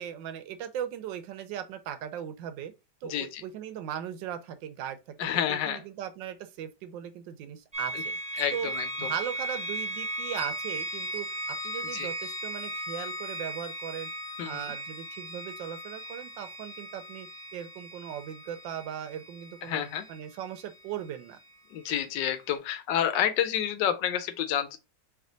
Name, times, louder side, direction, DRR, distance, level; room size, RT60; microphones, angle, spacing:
voice 1, 0.0-2.7 3.0-8.1 8.5-8.7 9.0-14.1 14.4-21.4, right 10 dB, 90° right, 1.3 m, -38 dB
voice 2, 3.0-3.4 5.2-5.8 8.4-8.9 11.9-12.1 14.4-14.6 19.7-20.0 21.7-24.8, left 10 dB, 75° left, 1.3 m, -29 dB
sound 1, 7.7-21.5, right 1 dB, 5° right, 0.6 m, -37 dB
3.3 x 3.1 x 3.8 m
omnidirectional pair, 1.9 m